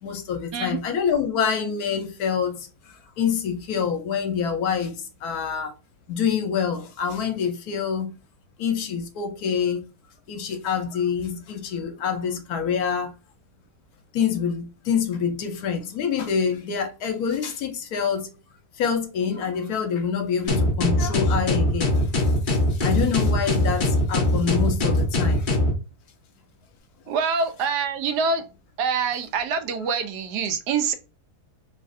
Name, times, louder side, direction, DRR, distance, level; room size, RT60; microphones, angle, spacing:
voice 1, 0.0-5.7 6.1-8.1 8.6-9.8 10.3-13.1 14.1-18.3 18.8-25.5, left 7 dB, 70° left, 1.1 m, -26 dB
sound 1, 20.5-25.8, left 1 dB, 50° left, 0.6 m, -21 dB
voice 2, 27.1-28.4 28.8-30.9, right 5 dB, 80° right, 1.2 m, -25 dB
3.1 x 2.4 x 2.5 m
omnidirectional pair, 1.7 m